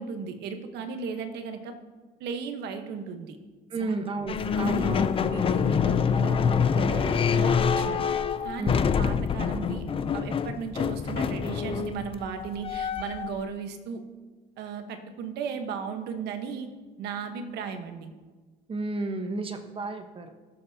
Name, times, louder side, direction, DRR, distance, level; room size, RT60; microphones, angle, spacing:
voice 1, 0.0-1.8 2.2-3.4 3.8-3.9 4.6-8.1 8.4-14.0 14.6-16.7 17.0-18.1, right 6 dB, 80° right, 7 dB, 1.2 m, -36 dB
voice 2, 3.7-5.1 8.6-8.8 18.7-20.3, right 2 dB, 30° right, 6 dB, 1.1 m, -32 dB
sound 1, 4.3-13.4, left 6 dB, 35° left, 0.5 m, -26 dB
19.5 x 7.0 x 2.8 m, 1.3 s
cardioid pair, 110°, 17 cm